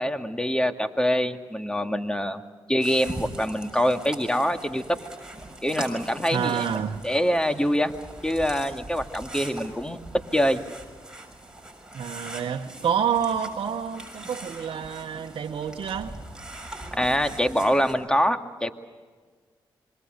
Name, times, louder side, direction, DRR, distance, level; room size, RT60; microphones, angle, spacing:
voice 1, 0.0-2.4 2.7-5.0 5.6-6.6 7.0-7.9 8.2-10.0 10.3-10.6 16.9-18.7, equal, 10° left, 2.1 m, -24 dB
sound 1, 2.8-17.9, right 1 dB, 10° right, 6.7 m, -41 dB
voice 2, 6.3-7.0 11.9-16.1, right 8 dB, 70° right, 1.1 m, -28 dB
26.5 x 24.0 x 6.6 m
cardioid pair, 55°, 9 cm